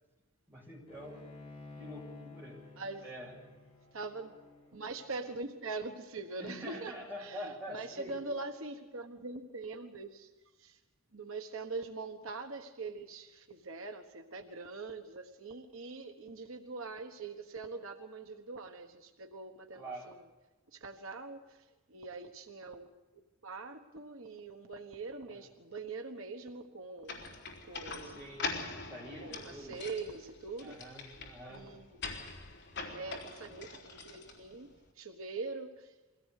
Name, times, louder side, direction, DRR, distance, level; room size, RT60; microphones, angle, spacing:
voice 1, 0.5-1.2 1.8-2.6 3.0-3.3 6.4-8.1 19.7-20.1 25.3-25.4 28.0-28.5 28.8-29.8 30.6-31.6, equal, 10° right, -3 dB, 7.9 m, -46 dB
Bowed string instrument, 0.9-6.2, left 3 dB, 25° left, 6.8 m, -53 dB
voice 2, 3.9-4.3 4.7-10.3 10.6-10.8 11.1-20.3 20.7-27.2 27.6-28.4 29.2-31.0 31.5-32.0 32.9-34.7 34.9-35.9, right 3 dB, 70° right, 5 dB, 1.4 m, -43 dB
sound 1, 27.1-34.7, left 4 dB, 55° left, 3.7 m, -43 dB
23.5 x 17.0 x 6.6 m, 1.2 s
head